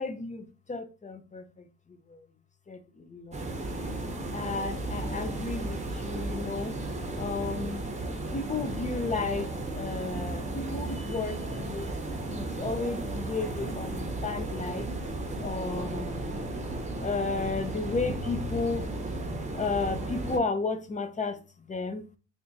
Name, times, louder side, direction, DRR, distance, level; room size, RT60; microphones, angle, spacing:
voice 1, 0.0-1.6 2.1-2.3 2.7-3.4 4.3-6.8 7.2-7.8 8.3-11.9 12.3-14.9 15.4-16.3 17.0-18.9 19.5-21.4 21.7-22.1, left 4 dB, 25° left, 0.7 m, -33 dB
sound 1, 3.3-20.4, right 2 dB, 25° right, 0.9 m, -34 dB
3.6 x 2.4 x 4.0 m
cardioid pair, 90°, 30 cm